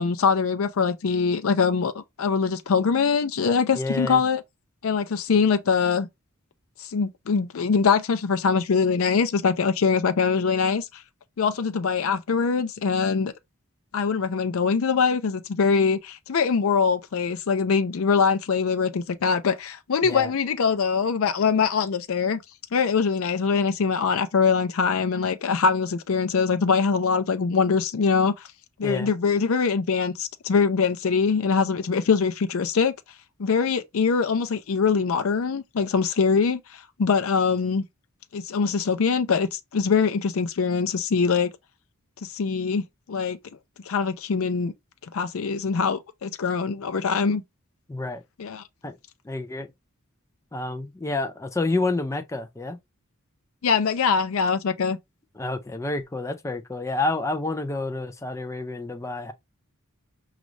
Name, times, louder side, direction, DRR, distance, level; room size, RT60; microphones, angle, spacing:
voice 1, 0.0-4.4 4.8-6.1 6.8-11.0 11.4-13.3 13.9-22.4 22.7-28.3 28.8-32.9 33.4-37.8 38.3-41.5 42.2-42.8 43.1-43.4 43.9-44.7 45.1-47.4 48.4-48.6 53.6-55.0, left 5 dB, 65° left, 0.5 m, -23 dB
voice 2, 3.7-4.2 20.0-20.3 28.8-29.1 47.9-48.2 48.8-48.9 49.2-49.7 50.5-52.8 55.4-59.3, left 2 dB, 15° left, 0.4 m, -29 dB
5.2 x 2.4 x 3.1 m
head